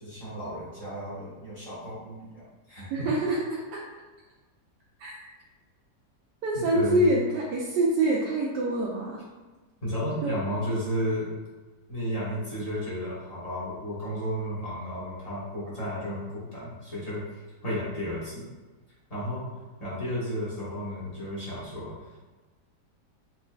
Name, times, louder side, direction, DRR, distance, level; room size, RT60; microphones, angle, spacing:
voice 1, 0.0-3.1 6.5-7.1 9.8-11.3 11.9-17.2 17.6-18.5 19.1-19.5 19.8-22.0, equal, 25° left, -9 dB, 1.1 m, -33 dB
voice 2, 2.9-3.8 5.0-5.3 6.4-9.2 10.2-10.4, right 1 dB, 80° right, -5 dB, 1.2 m, -26 dB
4.4 x 3.2 x 2.2 m, 1.2 s
omnidirectional pair, 1.9 m